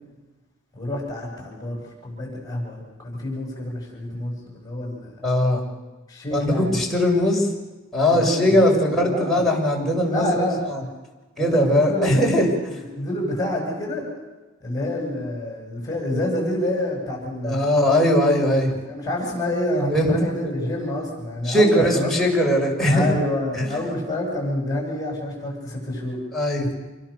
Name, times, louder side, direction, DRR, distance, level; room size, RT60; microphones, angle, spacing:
voice 1, 0.7-5.1 6.1-6.8 8.1-9.4 10.1-10.6 11.4-12.3 12.9-14.0 14.6-17.7 18.9-22.1 22.8-26.2 26.6-26.7, left 1 dB, 20° left, -1 dB, 7.7 m, -28 dB
voice 2, 5.2-5.6 6.3-7.5 7.9-10.8 11.4-12.5 17.4-18.8 19.9-20.1 20.4-20.6 21.4-23.1 23.5-23.8 26.3-26.7, equal, ahead, -3 dB, 6.3 m, -20 dB
29.0 x 21.5 x 6.9 m, 1.2 s
head